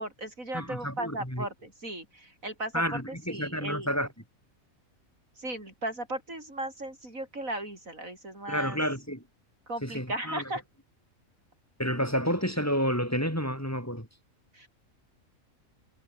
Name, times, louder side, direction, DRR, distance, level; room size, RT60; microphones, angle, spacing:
voice 1, 0.0-2.7 3.1-3.9 5.4-8.8 9.7-10.6 14.5-14.7, right 1 dB, 75° right, 8.3 m, -36 dB
voice 2, 0.5-1.5 2.7-4.1 8.5-9.2 9.8-10.5 11.8-14.1, equal, 10° left, 7.8 m, -30 dB
omnidirectional pair, 1.4 m